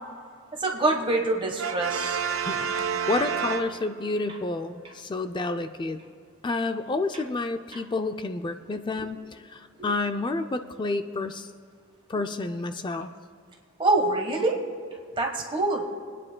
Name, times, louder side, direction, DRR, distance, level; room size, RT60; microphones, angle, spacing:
voice 1, 0.6-2.2 9.8-9.9 13.8-14.6 15.2-15.8, right 2 dB, 25° right, 1 dB, 1.3 m, -25 dB
Brass instrument, 1.6-4.2, right 7 dB, 70° right, 0.4 m, -29 dB
voice 2, 3.1-6.0 6.4-11.5 12.1-13.1, left 3 dB, 25° left, 8 dB, 0.4 m, -29 dB
24.5 x 9.8 x 2.2 m, 2.2 s
head